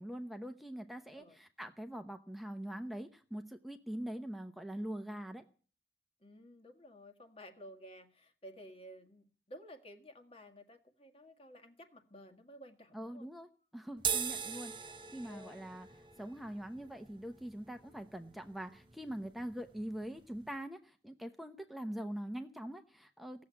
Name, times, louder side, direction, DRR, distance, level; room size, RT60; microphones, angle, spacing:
voice 1, 0.0-5.4 12.9-14.7 15.1-15.9 16.2-23.4, right 1 dB, ahead, 6 dB, 0.8 m, -43 dB
voice 2, 6.2-13.3 15.2-15.6, equal, 30° left, 6 dB, 1.8 m, -54 dB
sound 1, 14.0-20.6, right 8 dB, 25° right, 0.9 m, -42 dB
16.5 x 7.4 x 9.5 m, 0.41 s
head